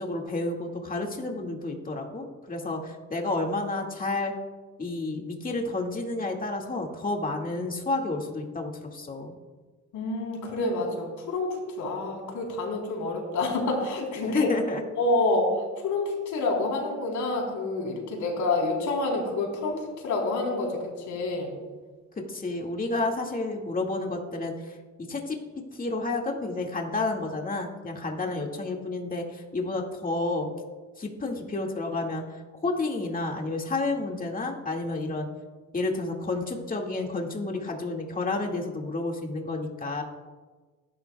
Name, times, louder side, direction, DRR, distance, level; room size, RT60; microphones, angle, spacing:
voice 1, 0.0-4.3 4.8-9.3 14.3-14.8 22.2-24.8 25.1-25.4 25.7-30.5 31.0-35.3 35.7-40.0, left 2 dB, 30° left, 0 dB, 2.1 m, -30 dB
voice 2, 9.9-14.5 15.0-21.5, left 2 dB, 80° left, 0 dB, 3.9 m, -28 dB
20.5 x 11.5 x 2.3 m, 1.3 s
cardioid pair, 90°, 30 cm